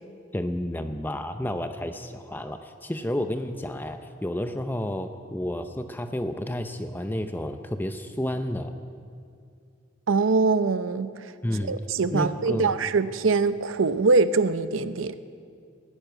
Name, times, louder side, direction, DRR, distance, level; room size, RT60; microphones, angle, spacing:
voice 1, 0.3-8.7 11.4-11.8 12.1-12.7, left 1 dB, 10° left, 8 dB, 0.5 m, -31 dB
voice 2, 10.1-11.3 11.7-15.1, right 4 dB, 90° right, 13 dB, 0.6 m, -23 dB
14.0 x 11.0 x 9.3 m, 2.3 s
head